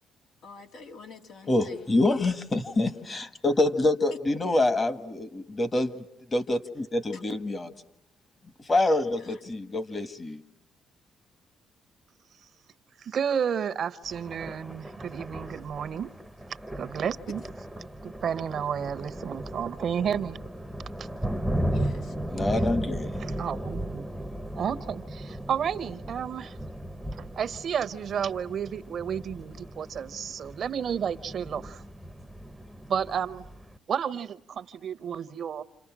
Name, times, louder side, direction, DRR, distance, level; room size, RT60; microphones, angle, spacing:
voice 1, 0.4-1.9 7.1-7.4 9.2-9.4 21.7-22.1 22.5-22.6, left 4 dB, 75° left, 3 dB, 2.9 m, -46 dB
voice 2, 1.5-6.0 6.3-7.7 8.7-10.4 22.3-23.1, left 2 dB, 30° left, 10 dB, 1.7 m, -26 dB
voice 3, 13.0-16.1 16.8-17.4 18.0-20.4 21.0-21.1 23.2-24.0 24.5-26.6 27.1-31.8 32.9-33.4 33.9-35.6, right 8 dB, 60° right, 15 dB, 0.9 m, -31 dB
Thunder, 14.0-33.8, right 1 dB, ahead, 1.0 m, -36 dB
29.5 x 28.0 x 6.2 m, 0.74 s
cardioid pair, 90°, 0 cm